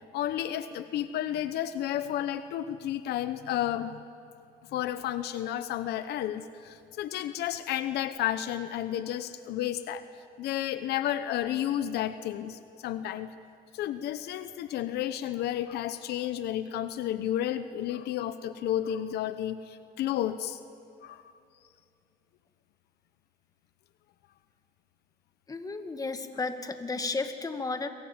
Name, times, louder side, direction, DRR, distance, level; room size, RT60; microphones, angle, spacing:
voice 1, 0.1-4.0 4.7-10.0 10.4-13.3 13.7-20.6 21.0-21.2, left 11 dB, 75° left, 12 dB, 1.0 m, -32 dB
voice 2, 25.5-27.9, left 3 dB, 20° left, 7 dB, 1.9 m, -33 dB
27.0 x 23.5 x 7.4 m, 2.6 s
cardioid pair, 110°, 17 cm